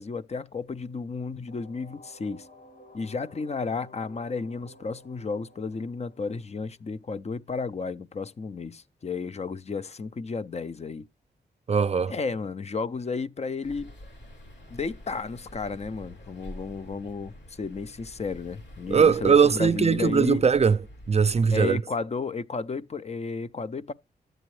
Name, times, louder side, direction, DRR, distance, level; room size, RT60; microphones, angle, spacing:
voice 1, 0.0-2.5 2.9-11.1 12.1-13.9 14.7-20.4 21.5-23.9, left 4 dB, 35° left, 0.5 m, -33 dB
sound 1, 1.5-7.2, left 1 dB, 65° left, 2.2 m, -53 dB
voice 2, 11.7-12.1 18.9-20.8 21.1-21.8, right 6 dB, 35° right, 0.4 m, -20 dB
sound 2, 13.6-21.6, equal, 85° left, 3.0 m, -47 dB
11.5 x 7.8 x 3.2 m
cardioid pair, 55°, 18 cm